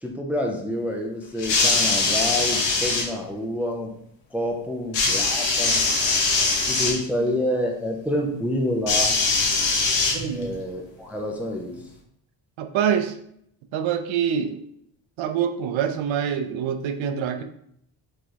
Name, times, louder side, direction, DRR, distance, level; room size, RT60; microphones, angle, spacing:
voice 1, 0.0-4.0 4.3-5.8 6.7-9.2 10.3-11.8, left 1 dB, 5° right, 1 dB, 0.3 m, -28 dB
sound 1, 1.4-3.1 4.9-7.0 8.9-10.6 11.5-11.6, left 3 dB, 70° left, 1.0 m, -22 dB
voice 2, 10.1-10.5 12.6-13.1 13.7-14.6 15.2-17.4, right 8 dB, 85° right, 8 dB, 0.6 m, -25 dB
4.4 x 3.2 x 2.8 m, 0.71 s
cardioid pair, 140°, 45 cm